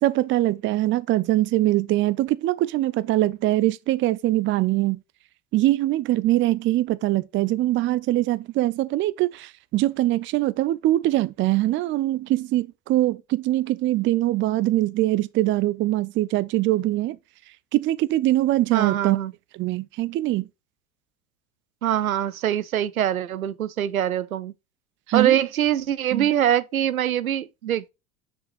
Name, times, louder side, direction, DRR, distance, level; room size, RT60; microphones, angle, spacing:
voice 1, 0.0-5.0 5.5-17.2 17.7-19.2 19.5-20.5 25.1-25.4 26.1-26.3, right 16 dB, 30° right, 0.5 m, -22 dB
voice 2, 18.7-19.3 21.8-24.5 25.1-27.9, right 10 dB, 85° right, 0.6 m, -23 dB
6.9 x 6.1 x 2.5 m
figure-of-eight pair, 75°, 41 cm